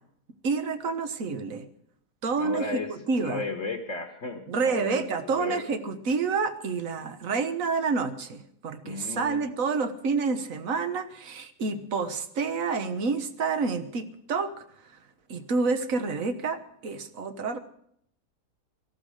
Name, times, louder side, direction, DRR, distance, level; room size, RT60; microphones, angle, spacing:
voice 1, 0.4-1.7 2.2-3.4 4.5-14.5 15.3-17.6, right 4 dB, 55° right, 10 dB, 1.5 m, -28 dB
voice 2, 2.4-2.9 3.2-5.6 8.8-9.5, left 3 dB, 50° left, 5 dB, 1.6 m, -34 dB
18.0 x 14.5 x 5.0 m, 0.70 s
omnidirectional pair, 1.8 m